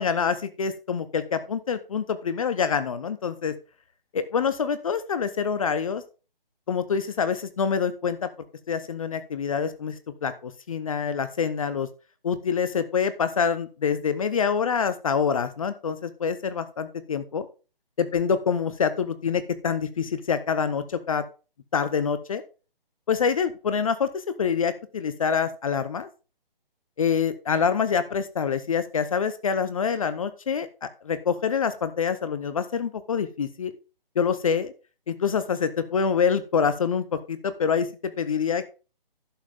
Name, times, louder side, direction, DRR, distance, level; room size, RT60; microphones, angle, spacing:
voice 1, 0.0-3.5 4.1-6.0 6.7-8.3 8.7-9.9 10.2-11.9 12.2-17.5 18.0-21.2 21.7-22.4 23.1-26.1 27.0-33.7 34.2-34.7 35.1-38.6, left 6 dB, 35° left, 12 dB, 0.8 m, -26 dB
11.5 x 7.4 x 3.5 m, 0.33 s
figure-of-eight pair, 145°, 29 cm